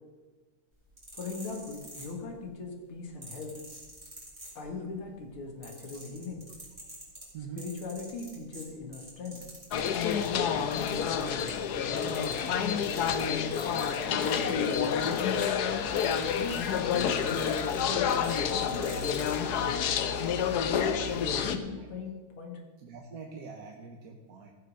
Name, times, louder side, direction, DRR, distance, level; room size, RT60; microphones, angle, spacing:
sound 1, 0.8-2.5 3.2-5.0 5.3-10.3 10.7-11.7 12.0-19.4 20.1-20.3, right 1 dB, 15° right, 4.2 m, -47 dB
voice 1, 1.1-3.5 4.5-6.4 7.4-9.5 10.5-12.9 14.1-15.5 16.3-18.1 18.3-20.2 21.1-22.6, left 4 dB, 80° left, 2 dB, 2.7 m, -39 dB
sound 2, 9.7-21.6, left 7 dB, 65° left, 1.1 m, -29 dB
voice 2, 22.8-24.5, right 6 dB, 55° right, 2 dB, 1.2 m, -44 dB
15.0 x 6.8 x 6.3 m, 1.3 s
omnidirectional pair, 2.3 m